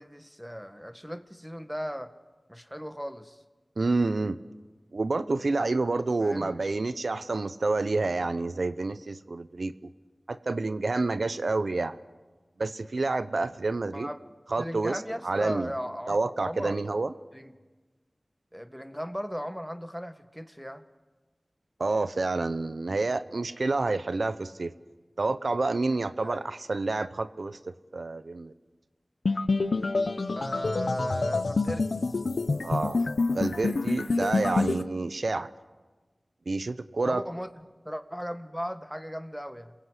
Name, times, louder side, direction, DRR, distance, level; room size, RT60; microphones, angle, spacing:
voice 1, 0.0-2.1 2.5-3.4 6.2-6.7 13.9-14.2 14.6-16.8 17.3-17.5 18.5-20.8 26.2-26.5 30.4-32.0 37.0-37.5 37.9-39.7, equal, ahead, 10 dB, 1.7 m, -36 dB
voice 2, 3.8-4.4 4.9-9.7 10.3-12.0 12.6-14.1 14.5-15.0 15.2-15.7 16.1-17.1 21.8-24.7 25.2-28.5 32.6-33.0 33.3-35.5 36.5-37.2, right 3 dB, 80° right, 13 dB, 0.9 m, -28 dB
sound 1, 29.2-34.8, left 3 dB, 90° left, 1.0 m, -27 dB
28.0 x 22.5 x 8.2 m, 1.3 s
wide cardioid pair, 45°, 0 cm